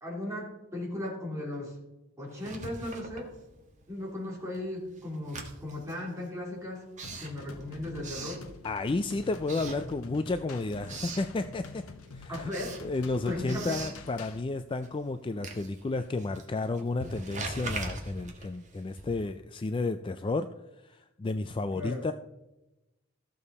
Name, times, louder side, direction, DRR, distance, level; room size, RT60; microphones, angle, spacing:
voice 1, 0.0-1.8 2.2-3.3 3.9-6.8 7.2-8.4 12.3-12.8 13.3-13.8 21.7-22.1, left 1 dB, 15° right, -3 dB, 3.1 m, -36 dB
Writing, 2.3-3.9 4.2-9.0 9.4-10.4 10.7-11.3 11.8-19.4, right 2 dB, 35° right, 1.5 m, -42 dB
sound 1, 7.0-14.4, left 3 dB, 75° left, 1.1 m, -46 dB
voice 2, 8.6-11.8 12.1-12.5 12.8-20.5 20.8-22.1, left 3 dB, 25° left, 10 dB, 0.3 m, -32 dB
14.0 x 6.9 x 4.2 m, 0.97 s
head